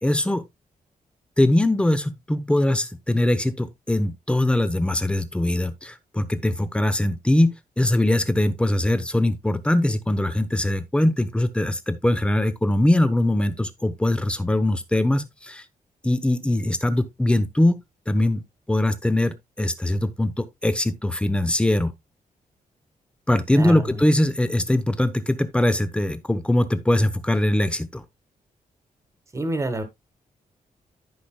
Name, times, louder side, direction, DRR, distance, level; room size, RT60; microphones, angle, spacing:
voice 1, 0.0-0.4 1.4-15.6 16.0-17.8 18.1-18.4 18.7-21.9 23.3-28.0, left 1 dB, 5° left, 0.9 m, -22 dB
voice 2, 23.5-24.0 29.3-29.8, right 1 dB, 20° right, 1.6 m, -27 dB
14.5 x 5.2 x 2.3 m
wide cardioid pair, 170°, 15 cm